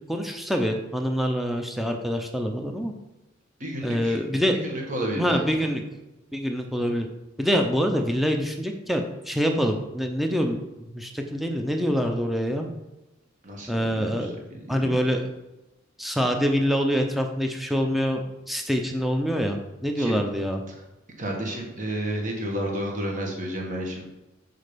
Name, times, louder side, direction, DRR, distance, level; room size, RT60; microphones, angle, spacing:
voice 1, 0.1-2.9 3.8-4.6 5.1-5.8 6.3-7.1 7.4-12.7 13.7-14.4 14.7-15.3 16.0-20.6, equal, ahead, 3 dB, 0.6 m, -25 dB
voice 2, 3.6-4.2 4.6-5.4 6.6-6.9 13.4-15.0 20.0-20.2 21.2-24.0, equal, 40° right, 0 dB, 1.4 m, -31 dB
6.4 x 4.0 x 5.1 m, 1.0 s
head